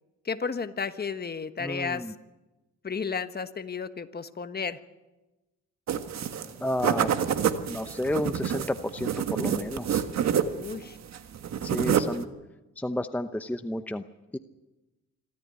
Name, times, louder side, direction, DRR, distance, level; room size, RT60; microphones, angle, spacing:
voice 1, 0.2-2.1 2.8-4.8 10.5-11.0, left 5 dB, 30° left, 10 dB, 1.3 m, -33 dB
voice 2, 1.6-2.1 6.6-7.1 7.7-10.0 11.6-12.3 12.8-14.0 14.3-14.4, left 1 dB, 5° left, 9 dB, 0.8 m, -31 dB
sound 1, 5.9-6.5 6.8-10.8 11.1-12.2, right 8 dB, 60° right, 1.6 m, -27 dB
26.5 x 13.5 x 9.7 m, 1.1 s
cardioid pair, 90°, 30 cm